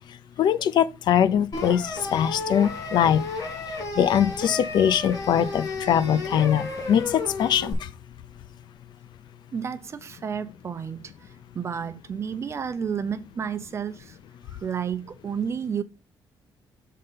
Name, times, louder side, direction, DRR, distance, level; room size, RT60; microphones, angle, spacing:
voice 1, 0.4-3.2 4.0-7.8, left 9 dB, 65° left, 0.6 m, -22 dB
sound 1, 1.5-7.7, left 3 dB, 45° left, 2.5 m, -33 dB
voice 2, 9.5-11.1 11.5-14.2 14.6-15.8, right 7 dB, 35° right, 0.7 m, -31 dB
6.6 x 3.8 x 5.6 m
cardioid pair, 145°, 8 cm